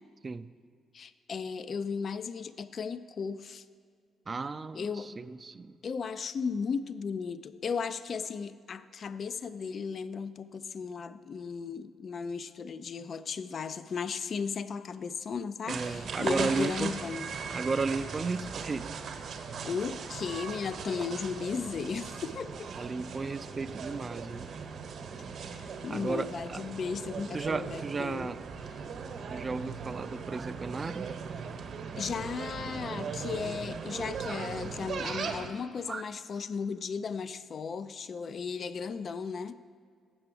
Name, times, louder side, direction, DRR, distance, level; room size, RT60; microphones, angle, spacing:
voice 1, 0.9-3.6 4.7-5.2 5.8-17.3 19.6-22.7 25.5-28.3 32.0-39.5, left 5 dB, 50° left, 14 dB, 0.3 m, -35 dB
voice 2, 4.3-5.8 15.7-16.9 17.5-18.9 22.7-24.5 25.9-26.6 27.3-28.4 29.3-31.1 35.9-36.0, right 4 dB, 30° right, 14 dB, 0.3 m, -34 dB
sound 1, 15.7-35.5, right 5 dB, 60° right, 0.9 m, -39 dB
7.7 x 5.9 x 7.5 m, 2.1 s
cardioid pair, 90°, 0 cm